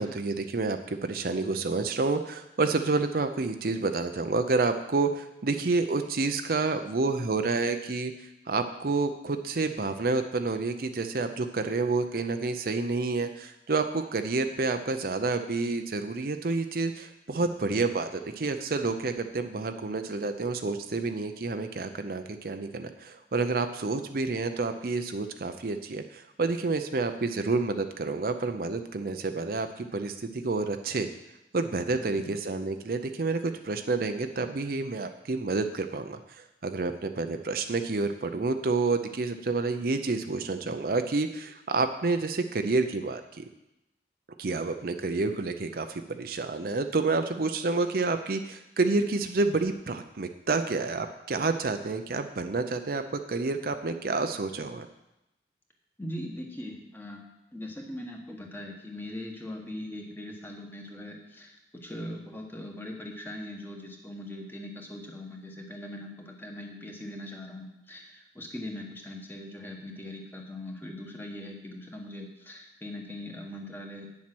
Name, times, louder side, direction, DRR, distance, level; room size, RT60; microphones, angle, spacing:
voice 1, 0.0-8.1 8.5-31.1 31.5-36.2 36.6-43.4 44.4-54.9, right 3 dB, 55° right, 7 dB, 0.6 m, -29 dB
voice 2, 31.9-32.3 56.0-57.2 57.5-74.1, left 1 dB, 10° left, 1 dB, 1.3 m, -41 dB
8.8 x 7.3 x 6.1 m, 0.89 s
head